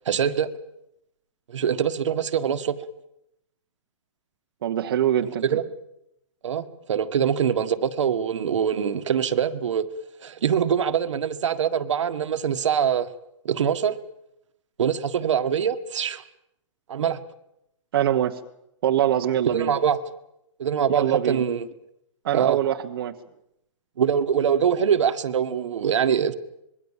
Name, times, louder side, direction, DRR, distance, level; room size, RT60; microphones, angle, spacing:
voice 1, 0.0-0.5 1.5-2.7 5.5-5.6 6.4-9.8 10.2-13.1 13.4-14.0 14.8-16.2 16.9-17.2 19.5-20.0 20.6-21.7 22.3-22.6 24.0-26.3, right 8 dB, 65° right, 9 dB, 1.7 m, -23 dB
voice 2, 4.6-5.4 17.9-18.4 18.8-19.7 20.9-21.4 22.2-23.2, right 11 dB, 45° right, 3 dB, 1.2 m, -23 dB
26.5 x 21.5 x 7.4 m, 0.82 s
hypercardioid pair, 175°, 16 cm